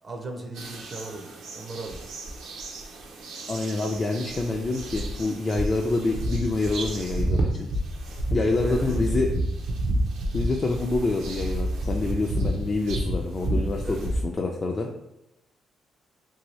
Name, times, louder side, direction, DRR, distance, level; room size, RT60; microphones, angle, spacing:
voice 1, 0.0-2.2 8.4-9.0 13.8-14.1, right 2 dB, 35° right, 2 dB, 0.4 m, -38 dB
sound 1, 0.6-14.2, right 1 dB, 80° right, 0.5 m, -30 dB
voice 2, 3.5-7.7 8.3-9.3 10.3-14.9, left 3 dB, 35° left, 1 dB, 0.3 m, -27 dB
2.7 x 2.6 x 3.1 m, 0.91 s
cardioid pair, 90°, 0 cm